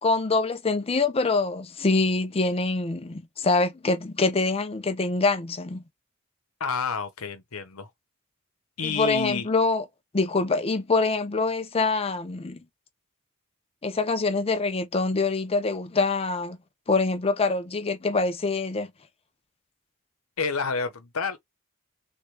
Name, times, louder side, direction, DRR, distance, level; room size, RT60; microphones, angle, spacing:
voice 1, 0.0-5.8 8.8-9.8 10.1-12.6 13.8-16.6 16.9-18.9, left 3 dB, 25° left, 0.5 m, -25 dB
voice 2, 6.6-7.9 8.8-9.5 20.4-21.4, left 5 dB, 80° left, 0.9 m, -29 dB
3.4 x 2.4 x 3.2 m
head